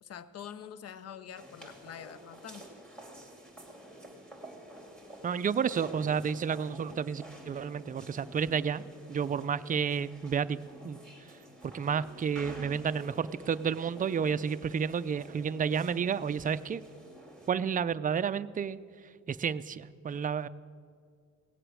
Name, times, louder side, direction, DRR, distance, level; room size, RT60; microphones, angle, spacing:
voice 1, 0.0-2.7, left 9 dB, 55° left, 15 dB, 0.7 m, -45 dB
sound 1, 1.3-17.5, right 1 dB, 5° left, 2.8 m, -50 dB
voice 2, 5.2-8.8 9.1-10.6 10.8-11.0 11.7-16.8 17.5-18.8 19.3-20.5, right 7 dB, 30° right, 14 dB, 0.4 m, -31 dB
18.0 x 7.9 x 6.3 m, 2.2 s
cardioid pair, 90°, 30 cm